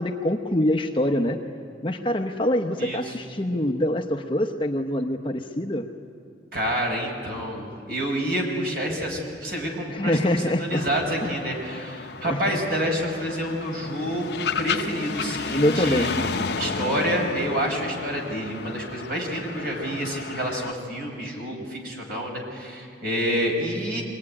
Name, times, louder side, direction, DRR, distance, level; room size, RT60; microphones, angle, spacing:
voice 1, 0.0-1.4 1.8-5.9 9.9-10.9 11.2-11.3 12.3-12.6 15.5-16.2, left 1 dB, 25° left, 4 dB, 0.9 m, -25 dB
voice 2, 2.8-3.1 6.5-24.0, equal, 55° right, 1 dB, 5.1 m, -28 dB
sound 1, 10.7-20.7, left 5 dB, 60° left, 0.7 m, -33 dB
24.5 x 19.0 x 9.8 m, 2.4 s
head